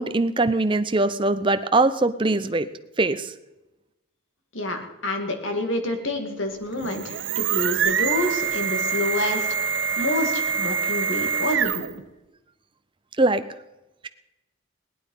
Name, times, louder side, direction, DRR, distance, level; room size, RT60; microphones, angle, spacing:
voice 1, 0.0-2.7 3.0-3.3 13.2-13.4, right 2 dB, 25° right, 11 dB, 0.6 m, -21 dB
voice 2, 4.5-9.5 10.0-11.9, left 1 dB, 70° left, 5 dB, 2.2 m, -28 dB
sound 1, 6.7-12.0, right 6 dB, 65° right, 0.7 m, -25 dB
17.5 x 11.5 x 5.5 m, 0.99 s
head